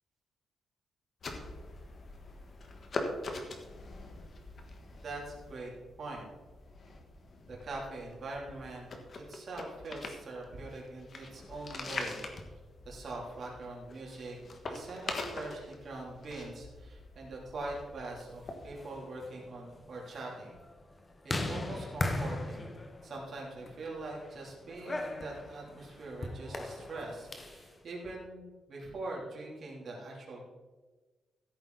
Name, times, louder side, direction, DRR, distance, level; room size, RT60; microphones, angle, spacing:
sound 1, 1.2-18.8, left 3 dB, 35° left, 1.3 m, -44 dB
voice 1, 5.0-5.7 6.0-6.3 7.5-8.9 9.1-12.2 12.8-14.4 14.7-20.5 21.2-30.4, right 2 dB, 45° right, -3 dB, 3.0 m, -43 dB
sound 2, 18.6-27.7, left 2 dB, 20° left, 1.0 m, -39 dB
15.0 x 8.8 x 4.0 m, 1.3 s
wide cardioid pair, 180°, 0 cm